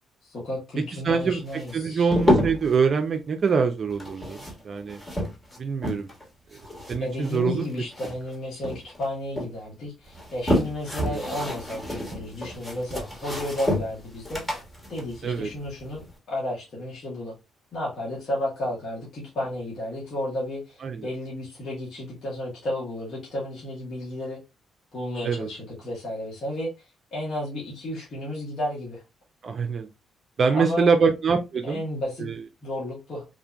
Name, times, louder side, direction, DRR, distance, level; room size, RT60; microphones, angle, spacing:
voice 1, 0.2-2.1 7.0-14.4 14.9-17.3 17.7-24.4 24.9-29.0 30.5-30.9 31.7-32.3 32.6-33.3, left 1 dB, 60° left, 1.3 m, -32 dB
voice 2, 1.0-5.0 5.6-6.1 6.9-7.7 11.0-11.2 15.2-15.5 20.8-21.1 25.2-25.5 29.4-29.9 30.4-31.8 32.2-32.4, right 5 dB, 45° right, 0.4 m, -24 dB
sound 1, 1.5-2.8 3.9-6.2 6.5-8.4 8.6-9.5 10.0-16.1, left 1 dB, 20° left, 1.4 m, -29 dB
3.5 x 2.5 x 2.2 m
cardioid pair, 90°, 0 cm